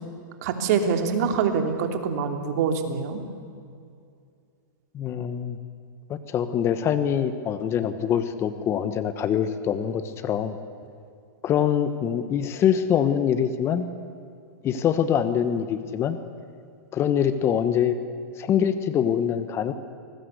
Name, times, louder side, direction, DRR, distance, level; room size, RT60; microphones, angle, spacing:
voice 1, 0.4-3.2, right 6 dB, 55° right, 5 dB, 3.0 m, -25 dB
voice 2, 4.9-5.6 6.1-10.6 11.4-13.9 14.6-16.2 16.9-17.9 18.4-19.7, left 9 dB, 25° left, 11 dB, 1.2 m, -24 dB
25.5 x 19.5 x 8.2 m, 2.4 s
hypercardioid pair, 140°, 10 cm